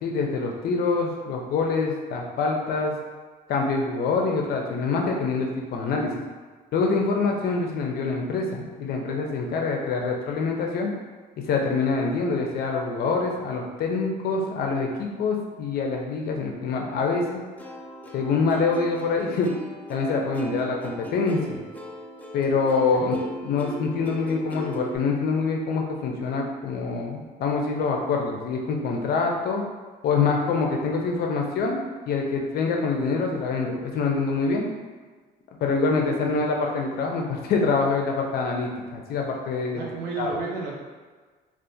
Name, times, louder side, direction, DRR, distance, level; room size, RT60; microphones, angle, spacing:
voice 1, 0.0-3.0 3.5-6.2 6.7-10.9 11.4-17.4 18.1-19.5 19.9-21.6 22.3-23.2 23.4-29.6 30.0-31.8 32.1-34.6 35.6-39.8 40.2-40.3, left 4 dB, 65° left, 1 dB, 0.6 m, -25 dB
Plucked string instrument, 17.6-25.0, equal, 10° left, 0.4 m, -38 dB
voice 2, 39.7-40.8, right 4 dB, 90° right, -3 dB, 0.6 m, -33 dB
3.5 x 2.5 x 2.6 m, 1.4 s
cardioid pair, 110°, 17 cm